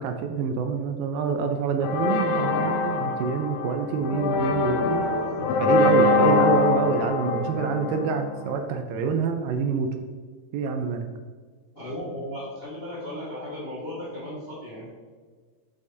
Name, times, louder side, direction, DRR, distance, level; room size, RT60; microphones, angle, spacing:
voice 1, 0.0-5.0 5.6-10.0 10.5-11.1, right 5 dB, 80° right, 6 dB, 2.2 m, -26 dB
sound 1, 1.8-8.6, left 3 dB, 85° left, 2.3 m, -24 dB
voice 2, 4.9-5.4 11.7-14.9, left 1 dB, 35° left, -8 dB, 0.8 m, -36 dB
6.3 x 5.6 x 2.7 m, 1.5 s
omnidirectional pair, 4.2 m